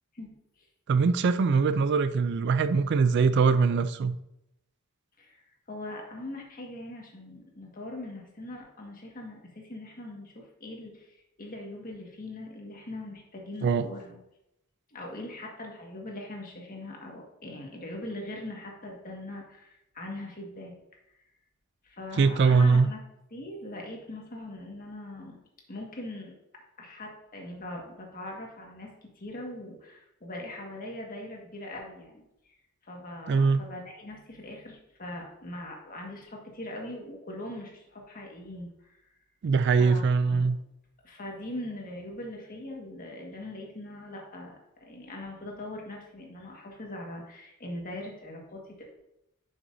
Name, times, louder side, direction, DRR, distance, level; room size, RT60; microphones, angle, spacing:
voice 1, 0.9-4.2 13.6-13.8 22.2-22.9 33.3-33.6 39.4-40.6, right 5 dB, 55° right, 12 dB, 0.3 m, -22 dB
voice 2, 5.2-14.2 14.9-20.7 21.8-23.0 23.3-25.4 25.7-26.3 26.8-32.5 32.8-39.1 39.8-40.5 41.0-48.9, left 1 dB, 40° left, 0 dB, 1.7 m, -41 dB
10.5 x 6.0 x 2.7 m, 0.86 s
head